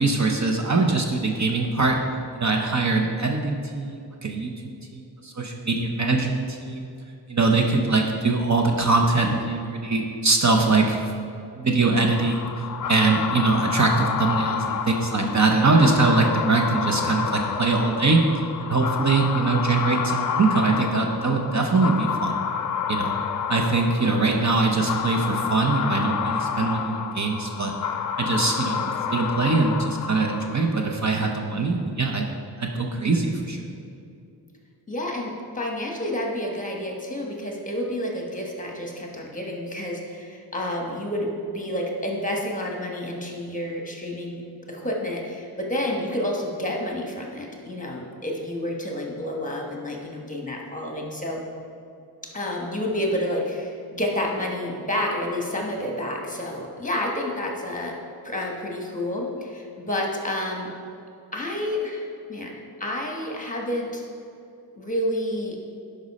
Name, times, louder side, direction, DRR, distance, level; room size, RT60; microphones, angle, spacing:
voice 1, 0.0-2.0 2.4-4.5 4.9-6.9 7.3-11.1 11.6-18.2 18.6-22.4 22.9-23.1 23.5-27.7 28.2-32.3 32.6-33.7, right 3 dB, 45° right, 2 dB, 0.8 m, -22 dB
sound 1, 11.9-30.8, left 7 dB, 50° left, 0.5 m, -29 dB
voice 2, 34.9-51.5 52.2-58.0 58.2-60.7 61.3-64.0 64.8-65.6, left 1 dB, 20° left, 0 dB, 1.3 m, -29 dB
11.5 x 5.3 x 4.2 m, 2.6 s
wide cardioid pair, 115°, 41 cm